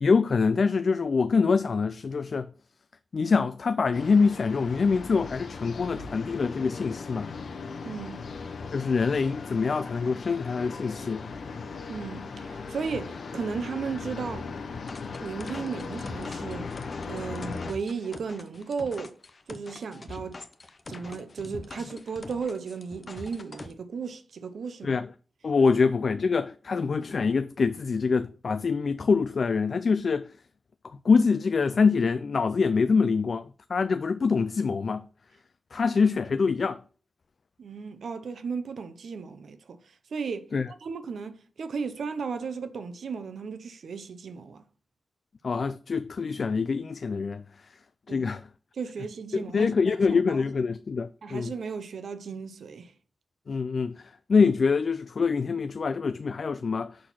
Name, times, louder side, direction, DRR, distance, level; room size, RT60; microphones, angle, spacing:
voice 1, 0.0-2.5 3.1-7.3 8.7-11.2 24.8-25.1 25.4-30.3 31.0-35.1 35.7-36.8 40.5-40.7 45.4-47.4 48.1-48.5 49.3-51.5 53.5-57.0, left 5 dB, 60° left, 0.3 m, -25 dB
sound 1, 3.9-17.7, left 4 dB, 75° left, 0.9 m, -38 dB
voice 2, 7.8-8.2 11.9-14.5 15.2-16.7 17.0-19.2 19.5-20.4 20.9-25.0 25.7-25.8 37.6-39.8 40.1-40.5 40.8-44.6 48.1-48.3 48.8-50.4 51.2-52.9, right 5 dB, 90° right, 0.7 m, -35 dB
sound 2, 14.7-23.7, left 3 dB, 40° left, 0.8 m, -44 dB
6.3 x 4.3 x 5.6 m
wide cardioid pair, 105°, 0 cm